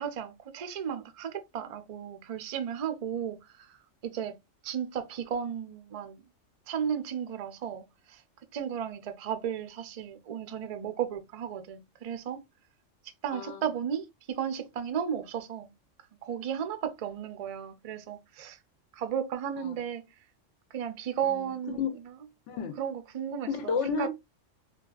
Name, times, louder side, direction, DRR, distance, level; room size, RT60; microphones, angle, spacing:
voice 1, 0.0-3.8 4.0-4.3 4.6-6.2 6.7-7.8 8.1-8.2 8.5-12.4 13.2-15.7 16.2-18.6 18.9-20.0 20.7-21.8 22.8-24.1, right 8 dB, 65° right, 0.3 m, -34 dB
voice 2, 22.5-22.8 23.5-24.1, left 6 dB, 70° left, 1.0 m, -32 dB
4.1 x 2.3 x 2.3 m
omnidirectional pair, 1.3 m